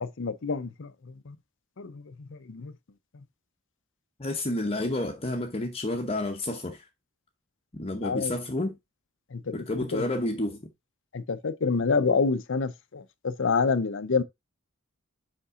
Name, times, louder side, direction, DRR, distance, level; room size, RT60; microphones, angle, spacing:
voice 1, 0.0-1.4 1.8-2.7 8.0-8.3 9.3-9.5 9.9-10.0 11.1-14.2, left 4 dB, 60° left, 0.7 m, -28 dB
voice 2, 4.2-6.8 7.7-8.8 9.5-10.6, left 1 dB, 30° left, 0.9 m, -30 dB
5.6 x 5.3 x 3.7 m
head